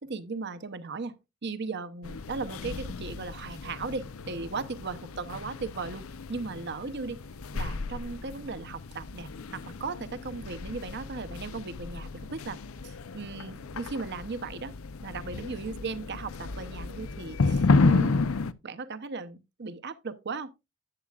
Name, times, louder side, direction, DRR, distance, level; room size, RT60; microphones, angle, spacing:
voice 1, 0.0-1.1 1.4-7.2 7.5-12.6 12.8-14.7 15.0-18.2 18.6-20.5, right 4 dB, 50° right, 0.8 m, -37 dB
sound 1, 2.0-18.5, left 3 dB, 75° left, 0.6 m, -32 dB
10.5 x 8.7 x 2.4 m
head